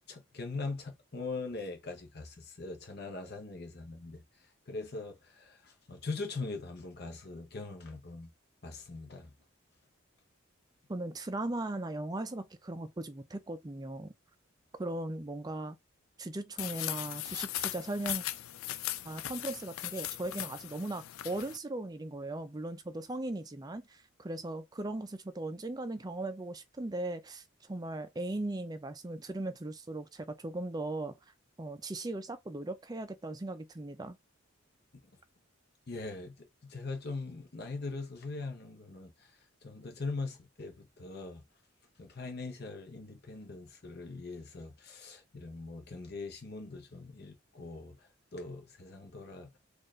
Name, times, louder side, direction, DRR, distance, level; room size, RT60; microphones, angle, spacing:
voice 1, 0.1-8.3 8.6-9.3 35.9-39.3 39.6-41.4 42.0-49.6, left 3 dB, 50° left, 0.8 m, -41 dB
voice 2, 10.9-14.1 14.8-15.8 16.2-18.2 19.0-31.2 31.6-34.2, right 2 dB, 20° right, 0.4 m, -38 dB
sound 1, 16.6-21.6, left 14 dB, 90° left, 0.4 m, -38 dB
4.4 x 2.5 x 3.1 m
head